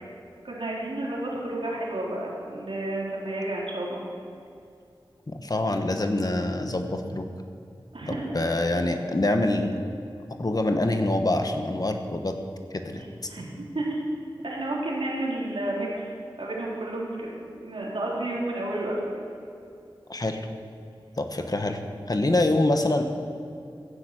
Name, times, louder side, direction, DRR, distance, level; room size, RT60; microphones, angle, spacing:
voice 1, 0.4-4.0 7.9-8.3 13.3-13.4 13.7-14.0 14.4-16.1 16.4-17.3 17.6-18.9, right 1 dB, 80° right, -5 dB, 4.0 m, -31 dB
voice 2, 5.3-7.3 8.1-9.7 10.4-12.4 12.7-13.0 20.1-20.5 21.2-21.8 22.1-23.0, left 2 dB, 45° left, 5 dB, 1.3 m, -25 dB
15.5 x 8.3 x 7.9 m, 2.5 s
wide cardioid pair, 65°, 9 cm